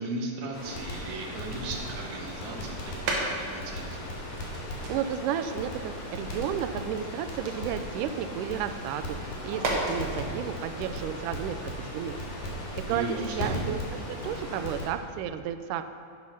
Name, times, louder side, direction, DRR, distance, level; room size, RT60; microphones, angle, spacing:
voice 1, 0.0-4.1 12.9-13.6, right 2 dB, 75° right, 1 dB, 2.4 m, -36 dB
Crackle, 0.5-14.9, left 1 dB, 80° left, 3.7 m, -37 dB
sound 1, 3.0-3.8 4.2-8.2 8.6-12.3, right 2 dB, 50° right, 1.8 m, -36 dB
voice 2, 4.9-12.2 12.8-13.8 14.1-15.8, right 9 dB, 90° right, 10 dB, 2.1 m, -32 dB
10.5 x 7.0 x 5.6 m, 2.3 s
omnidirectional pair, 3.6 m